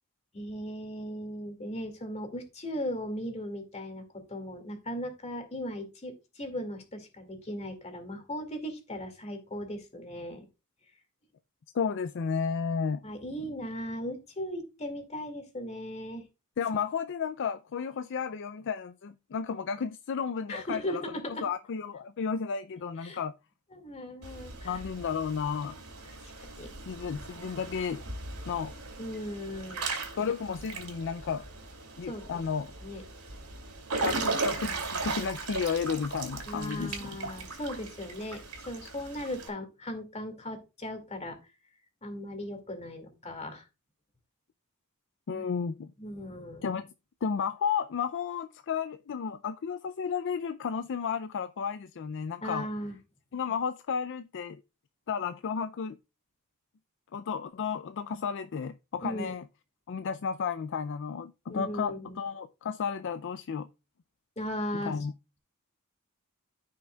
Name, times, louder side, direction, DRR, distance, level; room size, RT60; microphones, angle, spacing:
voice 1, 0.3-4.0 4.3-10.5 13.0-16.2 20.5-21.4 23.0-23.2 23.7-24.8 26.0-26.7 29.0-29.8 32.1-32.2 32.8-33.0 36.5-38.4 38.7-41.4 42.0-43.6 45.3-45.4 46.0-46.6 52.4-53.0 59.0-59.3 61.5-62.2 64.4-65.0, equal, 30° left, 2.2 m, -37 dB
voice 2, 11.7-13.0 16.6-21.0 21.3-23.3 24.6-25.8 26.9-28.0 28.4-28.7 30.2-31.5 32.0-32.7 34.0-37.1 45.3-45.9 46.6-46.9 47.2-52.7 53.3-54.6 55.1-56.0 57.1-59.4 59.9-63.7 64.9-65.1, left 6 dB, 55° left, 0.4 m, -33 dB
Water / Splash splatter / Drip, 24.2-39.5, right 3 dB, 75° right, 2.6 m, -38 dB
14.5 x 5.8 x 2.3 m
head